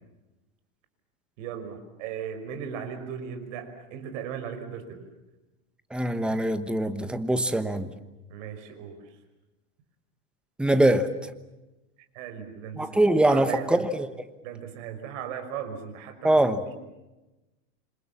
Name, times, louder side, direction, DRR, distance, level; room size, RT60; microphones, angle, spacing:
voice 1, 1.4-5.0 8.3-9.0 12.1-13.8 14.4-16.7, right 8 dB, 60° right, 5.8 m, -37 dB
voice 2, 5.9-7.9 10.6-11.1 12.8-14.1 16.2-16.6, right 1 dB, ahead, 1.1 m, -23 dB
27.5 x 26.0 x 7.3 m
supercardioid pair, 145°, 42 cm